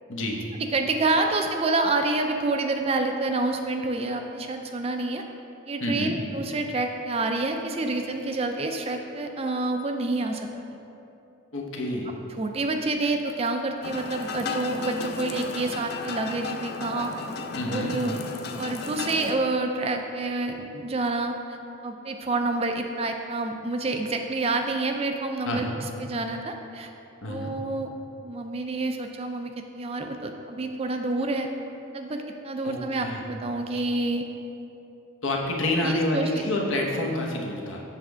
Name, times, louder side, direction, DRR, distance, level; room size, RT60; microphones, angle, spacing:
voice 1, 0.1-0.4 5.8-6.1 11.5-12.1 17.6-17.9 25.4-25.8 27.2-27.5 32.6-33.2 35.2-37.8, left 1 dB, 65° left, 0 dB, 0.9 m, -28 dB
voice 2, 0.7-5.2 5.7-10.5 12.4-17.1 17.7-18.2 18.5-25.7 26.0-26.9 27.3-27.9 28.2-31.5 31.9-34.3 35.8-36.4, right 2 dB, 30° right, 4 dB, 0.3 m, -28 dB
sound 1, 13.8-19.3, left 4 dB, 50° left, 0.4 m, -34 dB
7.3 x 3.4 x 6.2 m, 2.8 s
head